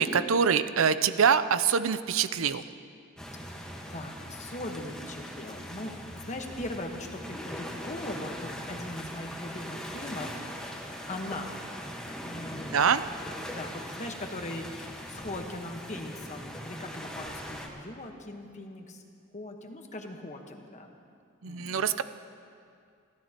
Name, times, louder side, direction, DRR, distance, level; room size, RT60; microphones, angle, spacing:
voice 1, 0.0-2.6 12.7-13.0 21.4-22.0, right 6 dB, 65° right, 12 dB, 0.5 m, -24 dB
sound 1, 3.2-17.7, equal, 5° left, 1.3 m, -41 dB
voice 2, 3.9-10.4 10.7-11.5 12.2-12.8 13.5-19.0 19.3-21.0 21.5-21.9, left 1 dB, 35° left, 3 dB, 1.2 m, -40 dB
25.5 x 15.5 x 2.9 m, 2.3 s
head